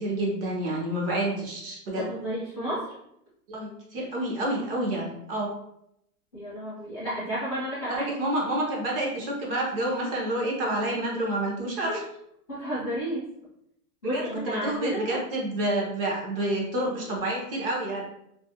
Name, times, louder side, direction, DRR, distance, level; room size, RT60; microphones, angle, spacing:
voice 1, 0.0-2.1 3.5-5.5 7.9-12.0 14.1-18.0, right 1 dB, 40° right, -2 dB, 0.6 m, -29 dB
voice 2, 2.0-2.9 6.3-8.1 12.5-13.3 14.0-15.2, equal, 20° left, -13 dB, 0.4 m, -32 dB
2.4 x 2.0 x 2.6 m, 0.77 s
supercardioid pair, 155°, 46 cm